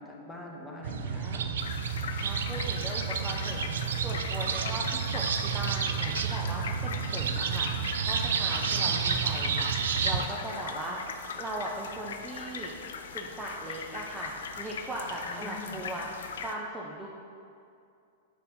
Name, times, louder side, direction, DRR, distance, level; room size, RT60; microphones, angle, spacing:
voice 1, 0.0-1.4 8.9-9.0 15.3-15.9, left 2 dB, 5° left, -3 dB, 1.1 m, -43 dB
sound 1, 0.8-10.3, right 6 dB, 65° right, 0.4 m, -30 dB
voice 2, 1.1-1.6 2.2-3.7 4.0-12.7 13.1-17.1, right 1 dB, 15° right, -3 dB, 0.6 m, -39 dB
sound 2, 1.6-16.5, left 5 dB, 65° left, 0.4 m, -40 dB
5.1 x 4.1 x 5.6 m, 2.5 s
figure-of-eight pair, 100°, 0 cm